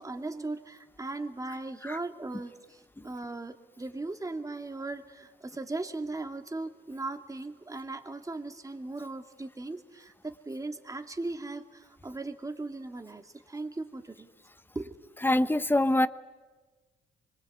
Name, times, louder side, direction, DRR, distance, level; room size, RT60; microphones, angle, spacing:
voice 1, 0.0-14.3 14.7-14.9, right 2 dB, 15° right, 6 dB, 2.3 m, -38 dB
voice 2, 15.2-16.1, left 1 dB, 10° left, 14 dB, 1.0 m, -24 dB
25.5 x 22.0 x 8.5 m, 1.3 s
cardioid pair, 90°, 20 cm